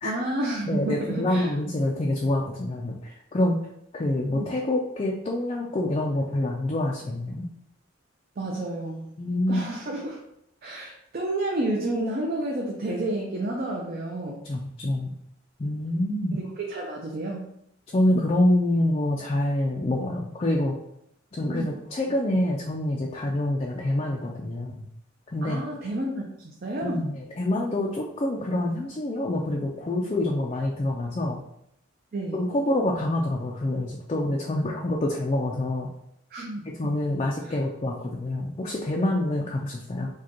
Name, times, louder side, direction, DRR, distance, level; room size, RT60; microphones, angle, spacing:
voice 1, 0.0-1.5 4.2-4.5 8.4-9.1 9.5-10.2 10.6-14.4 16.3-17.4 21.4-21.8 25.4-27.1 32.1-32.4 36.3-36.9 37.4-37.5, right 1 dB, 45° right, -1 dB, 0.5 m, -30 dB
voice 2, 0.7-3.6 3.9-7.5 9.2-9.6 14.5-15.1 15.6-16.4 17.9-20.7 21.3-24.8 25.3-25.6 26.8-31.4 32.3-35.9 36.8-40.1, left 1 dB, 30° left, -1 dB, 0.3 m, -26 dB
4.8 x 2.2 x 2.9 m, 0.77 s
head